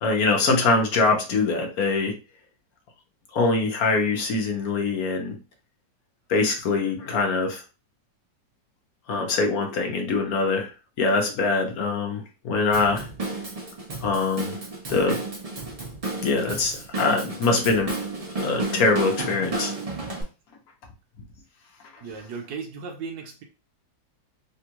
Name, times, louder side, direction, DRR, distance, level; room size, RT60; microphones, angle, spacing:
voice 1, 0.0-2.1 3.3-5.3 6.3-7.6 9.1-10.7 11.0-13.1 14.0-14.6 14.9-15.2 16.2-17.9 18.4-19.7, left 3 dB, 60° left, 2 dB, 1.1 m, -23 dB
Drum kit / Drum, 12.7-20.2, right 3 dB, 55° right, 0.4 m, -32 dB
voice 2, 22.0-23.4, right 5 dB, 75° right, 1 dB, 1.3 m, -36 dB
3.5 x 2.3 x 2.9 m, 0.31 s
omnidirectional pair, 2.0 m